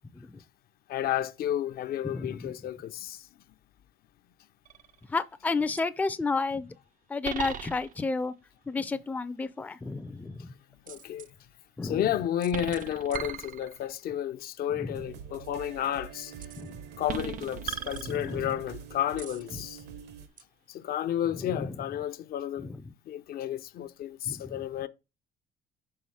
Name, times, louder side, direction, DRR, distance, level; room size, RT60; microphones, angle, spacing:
voice 1, 0.9-3.2 10.9-11.3 11.8-16.3 17.0-19.8 20.7-22.7 23.1-24.9, left 11 dB, 65° left, 0.6 m, -32 dB
voice 2, 2.0-2.5 5.1-6.7 7.1-8.3 8.7-10.5 11.8-12.0 14.8-14.9 16.6-16.7 18.1-18.5 21.4-21.8 22.6-22.8 24.3-24.6, left 4 dB, 10° left, 0.4 m, -32 dB
sound 1, 4.6-5.1 5.8-5.9 7.2-8.2 10.9-11.3 12.4-14.0 16.4-16.7 17.1-18.6 19.2-19.5 20.4-20.5, right 9 dB, 50° right, 0.5 m, -38 dB
sound 2, 14.9-20.3, right 7 dB, 80° right, 1.1 m, -45 dB
5.6 x 3.9 x 4.8 m
cardioid pair, 110°, 17 cm